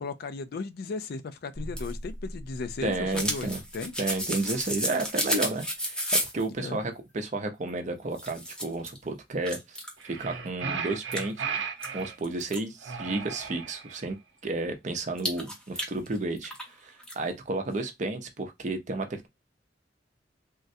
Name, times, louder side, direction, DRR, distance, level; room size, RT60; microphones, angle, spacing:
voice 1, 0.0-3.9 6.6-6.8, left 4 dB, 60° left, 0.4 m, -36 dB
sound 1, 1.6-6.5 7.7-7.8 8.1-9.0 9.4-10.0 10.5-10.6 11.1-12.6 15.2-16.7 17.0-17.1, equal, 5° left, 0.7 m, -32 dB
voice 2, 2.8-3.6 4.0-6.0 6.3-11.3 11.9-14.2 14.4-19.3, right 2 dB, 40° right, 0.6 m, -32 dB
sound 2, 10.0-12.2 12.8-14.1, right 6 dB, 85° right, 0.7 m, -35 dB
3.5 x 2.1 x 2.6 m
head